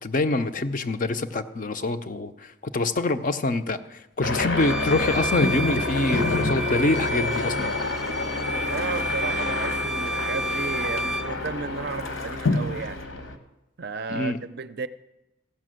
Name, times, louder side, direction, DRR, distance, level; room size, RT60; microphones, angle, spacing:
voice 1, 0.0-7.7 14.1-14.4, left 2 dB, 40° left, 9 dB, 0.6 m, -25 dB
sound 1, 4.2-13.4, left 2 dB, 65° left, 1.2 m, -29 dB
Bowed string instrument, 4.6-11.4, right 1 dB, ahead, 0.6 m, -31 dB
sound 2, 4.9-7.4 7.9-8.0 8.2-10.4 11.0-11.1 11.4-11.5 11.9-13.0, left 3 dB, 85° left, 0.9 m, -30 dB
voice 2, 8.7-13.0 13.8-14.9, right 4 dB, 50° right, 12 dB, 0.5 m, -33 dB
15.0 x 5.8 x 7.6 m, 0.95 s
head